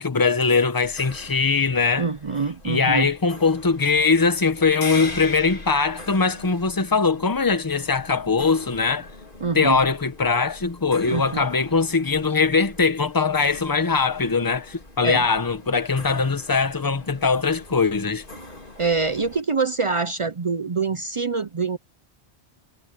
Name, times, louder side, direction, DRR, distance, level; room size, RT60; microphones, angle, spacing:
voice 1, 0.0-2.1 2.6-9.1 9.5-18.2, left 4 dB, 20° left, 0.8 m, -21 dB
sound 1, 0.8-19.4, left 2 dB, 50° left, 3.7 m, -42 dB
voice 2, 2.0-3.1 9.4-9.8 11.1-11.5 15.0-15.3 18.8-21.8, right 4 dB, 40° right, 0.4 m, -25 dB
omnidirectional pair, 1.1 m